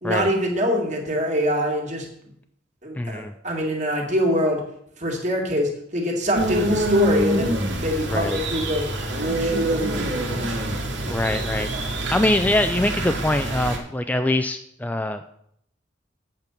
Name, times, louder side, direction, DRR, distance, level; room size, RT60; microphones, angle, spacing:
voice 1, 0.0-2.1 2.8-4.6 5.0-8.9 9.2-10.6, equal, 40° right, 0 dB, 2.0 m, -24 dB
voice 2, 3.0-3.3 8.1-8.4 11.1-15.3, left 1 dB, 10° left, 7 dB, 0.3 m, -24 dB
sound 1, 6.3-13.8, right 1 dB, 65° right, 1.9 m, -25 dB
8.3 x 5.2 x 7.1 m, 0.71 s
head